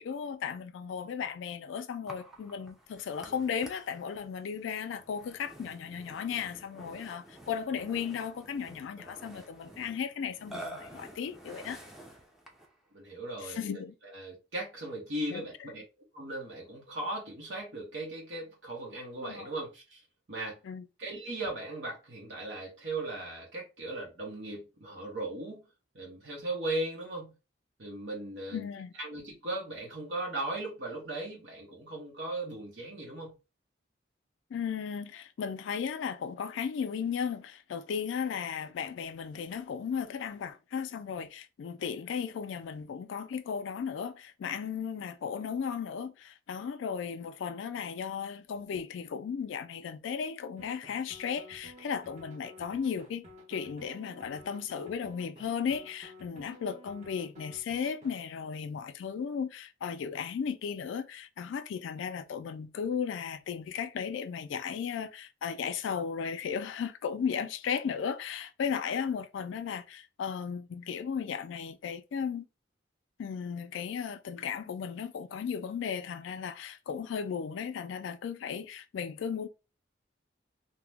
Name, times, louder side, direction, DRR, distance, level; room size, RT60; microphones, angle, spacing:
voice 1, 0.0-11.8 13.4-13.9 15.3-15.4 19.1-19.5 20.6-20.9 28.5-28.9 34.5-72.4 73.2-79.5, left 7 dB, 75° left, 0.3 m, -35 dB
Burping eructation, 2.1-12.8, right 1 dB, ahead, 0.4 m, -49 dB
voice 2, 12.9-13.6 14.1-15.8 16.1-20.0 20.3-20.6 21.0-25.7 25.9-27.3 27.8-28.7 29.0-33.3, right 2 dB, 65° right, 1.0 m, -37 dB
sound 1, 50.6-58.2, left 1 dB, 40° right, 0.9 m, -52 dB
2.8 x 2.1 x 3.3 m
head